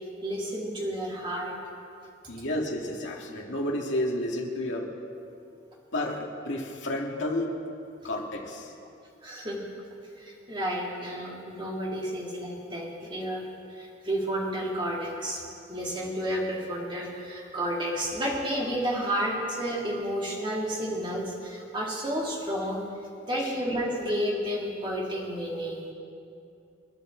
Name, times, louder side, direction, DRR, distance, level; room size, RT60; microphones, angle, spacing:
voice 1, 0.2-1.6 9.2-9.6 10.2-13.5 13.7-15.4 15.7-22.8 23.3-25.9, equal, 25° right, -3 dB, 2.5 m, -31 dB
voice 2, 2.3-4.9 5.9-7.6 8.0-8.7 23.4-23.5, left 1 dB, 70° left, -1 dB, 2.2 m, -31 dB
28.5 x 10.5 x 3.9 m, 2.6 s
head